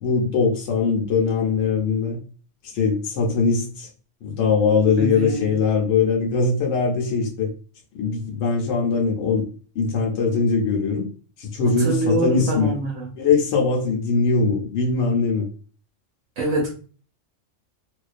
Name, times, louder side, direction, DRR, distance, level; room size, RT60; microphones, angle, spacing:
voice 1, 0.0-2.2 2.7-3.9 4.2-7.5 7.9-9.5 9.8-11.1 11.4-12.7 13.1-15.5, left 4 dB, 70° left, 0.8 m, -21 dB
voice 2, 5.0-5.4 11.8-13.1 16.4-16.9, right 2 dB, 90° right, 1.0 m, -25 dB
2.4 x 2.1 x 2.4 m
omnidirectional pair, 1.3 m